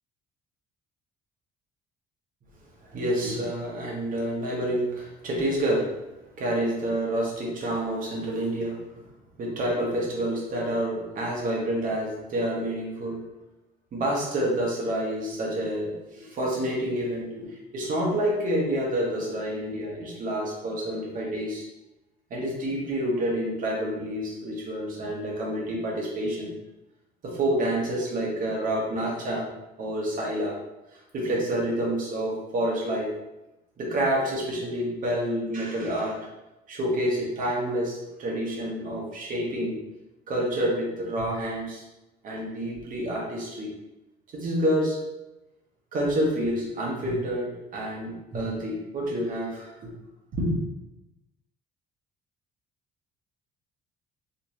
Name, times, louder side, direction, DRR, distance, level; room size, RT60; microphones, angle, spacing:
voice 1, 2.8-5.9 6.4-9.0 9.4-13.2 13.9-21.6 22.3-26.5 27.2-29.5 29.8-30.6 30.9-33.1 33.8-36.2 36.7-39.8 40.3-41.8 42.2-43.7 44.3-45.0 45.9-49.9 50.3-50.6, right 1 dB, 55° right, -3 dB, 1.2 m, -28 dB
3.2 x 3.1 x 2.9 m, 0.99 s
cardioid pair, 110°, 17 cm